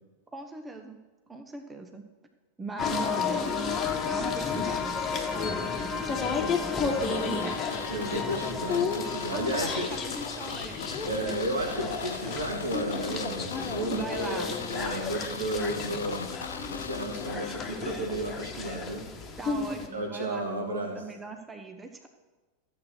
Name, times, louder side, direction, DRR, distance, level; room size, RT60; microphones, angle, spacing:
voice 1, 0.3-1.0 1.3-2.0 2.6-3.5 4.0-7.6 8.1-8.4 9.3-11.0 13.9-14.5 19.4-22.1, right 3 dB, 15° right, 5 dB, 1.1 m, -40 dB
sound 1, 2.8-19.9, left 5 dB, 25° left, 1.7 m, -32 dB
sound 2, 7.0-18.0 18.2-18.3, left 6 dB, 70° left, 0.4 m, -41 dB
voice 2, 7.9-9.9 11.0-16.3 16.6-19.0 19.9-20.9, right 1 dB, 70° right, 2 dB, 2.4 m, -33 dB
13.5 x 8.3 x 6.3 m, 1.2 s
figure-of-eight pair, 90°, 0 cm